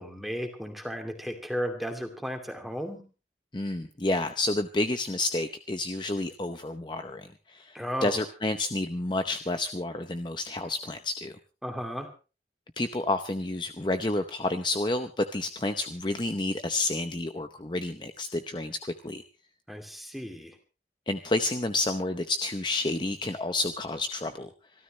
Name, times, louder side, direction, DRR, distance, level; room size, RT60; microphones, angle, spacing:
voice 1, 0.0-3.0 7.7-8.2 11.6-12.1 19.7-20.6, equal, ahead, 4 dB, 2.6 m, -34 dB
voice 2, 3.5-11.3 12.8-19.2 21.1-24.5, left 2 dB, 25° left, 8 dB, 0.7 m, -30 dB
26.0 x 13.0 x 3.2 m, 0.34 s
head